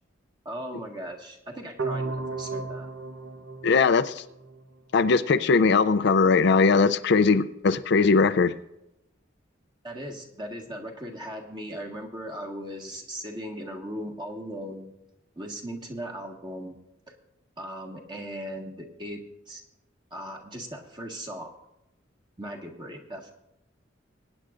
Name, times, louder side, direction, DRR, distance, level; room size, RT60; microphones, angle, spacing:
voice 1, 0.5-2.9 9.8-14.9 15.4-16.8 17.1-17.2 17.6-19.6 20.1-21.5 22.4-23.3, equal, 25° right, 1.7 m, -38 dB
sound 1, 1.8-4.8, right 3 dB, 90° right, 1.0 m, -34 dB
voice 2, 3.6-4.2 4.9-8.5, left 4 dB, 60° left, 0.5 m, -20 dB
23.5 x 9.7 x 2.5 m
head